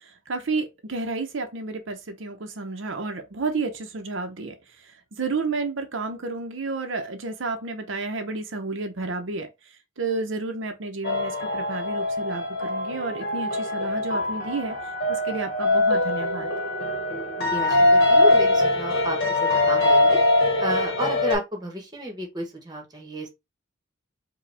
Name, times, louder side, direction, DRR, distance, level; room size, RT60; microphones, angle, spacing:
voice 1, 0.3-4.6 5.2-9.5 10.0-14.8 15.1-16.5, right 3 dB, 75° right, 0.8 m, -31 dB
sound 1, 11.0-21.3, left 2 dB, 50° left, 1.5 m, -22 dB
voice 2, 17.4-20.2 20.6-23.3, right 1 dB, 20° right, 1.1 m, -32 dB
4.8 x 2.3 x 3.4 m
head